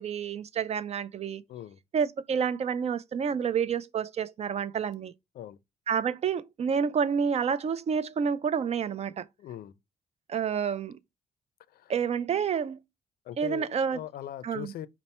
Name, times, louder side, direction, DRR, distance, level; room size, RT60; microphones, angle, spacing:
voice 1, 0.0-1.4 1.9-5.1 5.9-9.3 10.3-11.0 11.9-12.8 13.4-14.0 14.4-14.7, right 7 dB, 40° right, 0.4 m, -29 dB
voice 2, 9.4-9.8 11.7-11.9 13.3-14.9, left 11 dB, 70° left, 0.4 m, -40 dB
5.3 x 2.0 x 4.2 m
cardioid pair, 110°, 16 cm